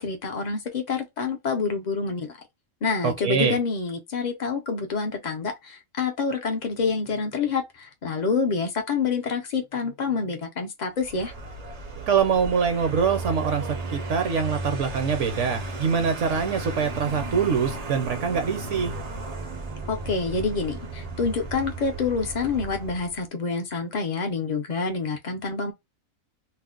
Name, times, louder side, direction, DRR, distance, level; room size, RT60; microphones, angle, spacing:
voice 1, 0.0-2.4 2.8-11.3 19.9-25.7, left 4 dB, 60° left, 0.4 m, -27 dB
voice 2, 3.0-3.6 12.1-18.9, right 6 dB, 65° right, 0.9 m, -24 dB
Vehicle, 11.0-23.2, right 2 dB, 50° right, 0.4 m, -35 dB
2.5 x 2.1 x 3.6 m
omnidirectional pair, 1.4 m